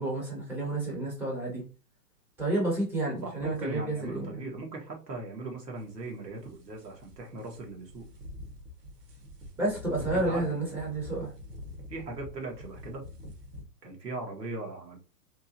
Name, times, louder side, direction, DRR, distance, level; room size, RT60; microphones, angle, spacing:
voice 1, 0.0-1.6 2.4-4.3 9.6-11.3, right 2 dB, 5° right, -3 dB, 0.5 m, -30 dB
voice 2, 3.2-8.0 10.0-10.6 11.9-13.1 13.8-15.0, right 2 dB, 85° right, 1 dB, 1.7 m, -39 dB
sound 1, 5.8-13.6, left 1 dB, 70° right, 1.6 m, -45 dB
3.6 x 3.0 x 2.7 m, 0.35 s
hypercardioid pair, 135°, 48 cm